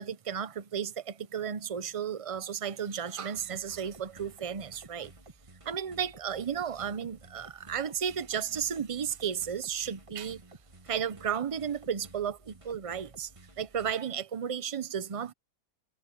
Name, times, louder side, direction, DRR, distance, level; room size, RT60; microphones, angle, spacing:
voice 1, 0.0-5.1 5.6-10.4 10.8-13.3 13.6-15.3, right 8 dB, 45° right, 0.4 m, -33 dB
sound 1, 3.4-13.9, right 2 dB, 20° right, 1.7 m, -54 dB
omnidirectional pair, 1.6 m